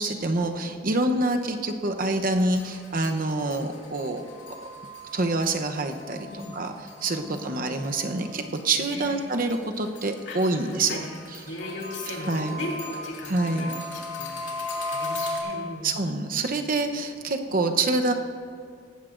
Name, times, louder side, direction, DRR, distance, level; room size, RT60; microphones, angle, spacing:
voice 1, 0.0-4.2 5.1-6.3 6.5-6.7 7.0-11.0 12.3-12.6 13.2-13.7 15.8-18.1, right 2 dB, 50° right, 5 dB, 0.9 m, -26 dB
sound 1, 2.4-8.6 9.0-15.4, left 2 dB, 85° left, 2.4 m, -37 dB
voice 2, 6.3-6.6 7.2-7.7 8.9-9.1 10.3-11.0 11.4-16.0 17.4-17.5, left 1 dB, 65° left, -2 dB, 3.0 m, -38 dB
18.5 x 14.5 x 2.6 m, 2.2 s
head